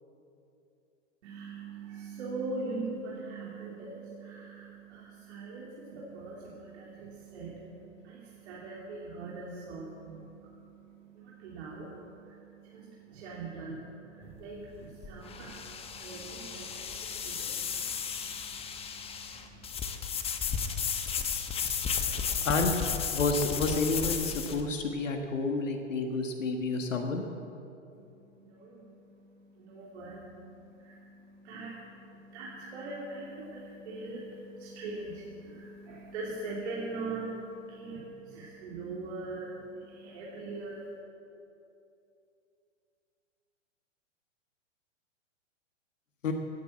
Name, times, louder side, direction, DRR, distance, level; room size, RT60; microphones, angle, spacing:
voice 1, 1.2-19.7 27.9-41.0, right 3 dB, 60° right, -5 dB, 3.0 m, -42 dB
sound 1, 14.2-24.6, left 6 dB, 15° left, 0.9 m, -34 dB
voice 2, 22.4-22.8 23.1-27.2 46.2-46.3, left 3 dB, 80° left, 4 dB, 1.6 m, -30 dB
16.5 x 9.7 x 7.5 m, 2.7 s
hypercardioid pair, 115°, 38 cm